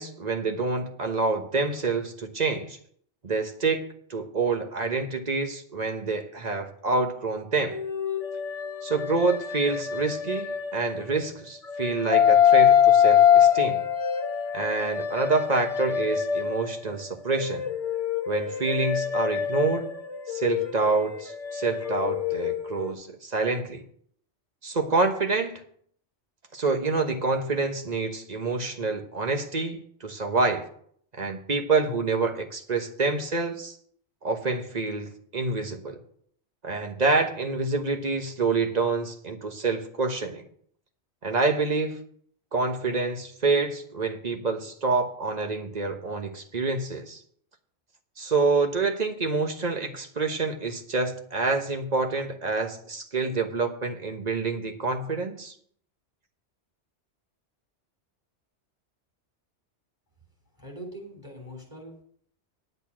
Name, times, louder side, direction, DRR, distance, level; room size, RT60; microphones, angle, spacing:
voice 1, 0.0-2.8 3.2-3.8 4.1-7.8 8.8-13.8 14.5-17.7 18.3-19.9 20.3-23.8 24.6-25.6 26.5-30.7 31.1-33.7 34.2-36.0 36.6-40.4 41.2-42.0 42.5-47.2 48.2-55.5, right 3 dB, 40° right, 6 dB, 1.1 m, -27 dB
sound 1, 7.7-11.3 11.7-16.9 17.3-22.9, left 9 dB, 30° left, 1.0 m, -24 dB
voice 2, 60.6-62.0, right 1 dB, 20° right, -1 dB, 2.8 m, -42 dB
10.5 x 6.8 x 6.1 m, 0.62 s
omnidirectional pair, 1.2 m